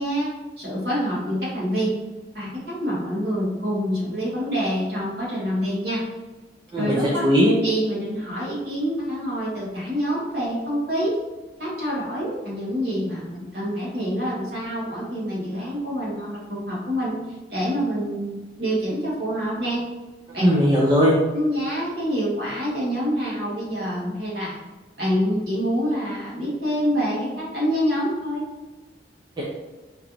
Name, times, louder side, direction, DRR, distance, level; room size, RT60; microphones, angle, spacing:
voice 1, 0.0-2.0 2.3-6.0 6.8-7.3 7.6-11.2 11.6-17.2 17.5-19.9 20.3-20.5 21.3-24.6 25.0-28.5, equal, 60° right, -6 dB, 1.4 m, -26 dB
voice 2, 6.7-7.5 20.4-21.2 29.4-29.5, equal, 25° right, -5 dB, 0.5 m, -18 dB
4.5 x 2.5 x 3.0 m, 1.2 s
head